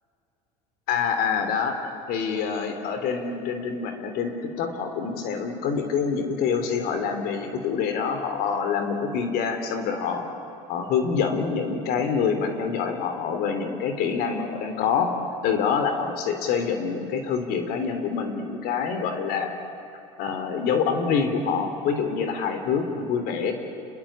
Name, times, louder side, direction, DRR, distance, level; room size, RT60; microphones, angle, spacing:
voice 1, 0.9-10.2 10.7-15.1 15.4-19.5 20.2-23.5, left 6 dB, 60° left, 7 dB, 3.3 m, -26 dB
28.5 x 21.0 x 8.7 m, 2.7 s
supercardioid pair, 90°, 18 cm